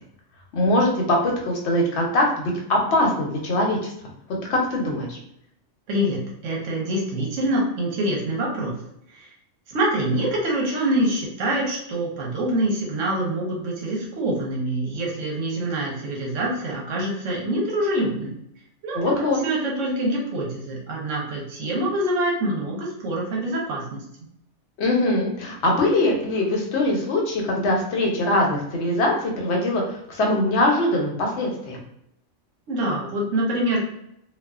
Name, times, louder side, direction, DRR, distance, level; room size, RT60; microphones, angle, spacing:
voice 1, 0.5-3.9 4.5-5.2 18.9-19.4 24.8-31.8, left 1 dB, 65° left, 0 dB, 0.9 m, -22 dB
voice 2, 5.9-8.7 9.1-9.3 9.7-18.4 18.8-24.0 32.7-33.8, right 1 dB, 80° right, -2 dB, 1.1 m, -25 dB
2.4 x 2.3 x 2.3 m, 0.76 s
omnidirectional pair, 1.3 m